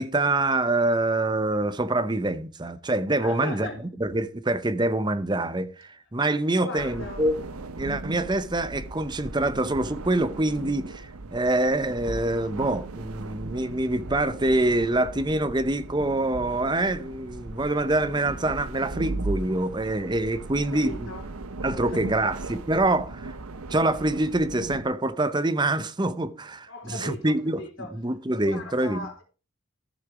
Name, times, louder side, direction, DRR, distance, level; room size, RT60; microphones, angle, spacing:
voice 1, 0.0-3.7 4.0-7.3 7.8-21.1 21.6-23.4 23.7-27.6 27.9-29.1, right 2 dB, 20° right, 0.7 m, -25 dB
voice 2, 3.2-3.8 6.6-7.2 20.5-21.3 21.7-22.3 26.7-27.9 28.4-29.2, left 2 dB, 60° left, 3.6 m, -39 dB
sound 1, 6.8-24.9, right 2 dB, 85° right, 0.9 m, -37 dB
14.0 x 6.6 x 4.8 m
head